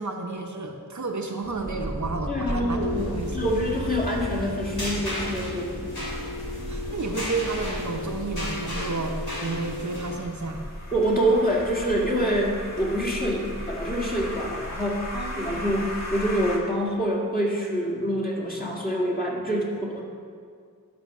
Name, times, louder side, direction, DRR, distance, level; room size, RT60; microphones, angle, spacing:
voice 1, 0.0-2.9 3.2-3.4 6.7-10.7 15.1-15.8, right 3 dB, 50° right, 2 dB, 0.8 m, -31 dB
sound 1, 1.4-10.9, right 1 dB, 25° right, 1.2 m, -36 dB
voice 2, 2.3-5.7 10.9-15.1 15.4-20.0, equal, 25° left, -3 dB, 2.0 m, -26 dB
sound 2, 2.7-10.1, left 2 dB, 80° left, 3.0 m, -34 dB
sound 3, 6.0-16.6, left 1 dB, 45° left, 1.7 m, -37 dB
10.5 x 6.4 x 6.0 m, 2.3 s
wide cardioid pair, 75°, 37 cm